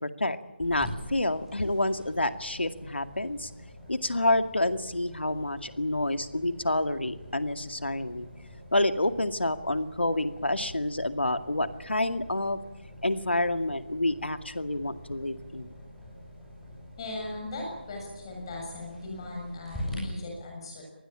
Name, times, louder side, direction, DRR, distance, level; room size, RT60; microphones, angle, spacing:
voice 1, 0.0-3.5 3.9-8.3 8.7-12.6 13.0-15.7, left 1 dB, 85° left, 9 dB, 2.2 m, -28 dB
sound 1, 0.6-20.0, left 1 dB, ahead, 7.2 m, -45 dB
voice 2, 17.0-20.8, left 2 dB, 25° left, 0 dB, 7.0 m, -38 dB
26.0 x 20.0 x 8.8 m, 1.0 s
figure-of-eight pair, 160°, 6 cm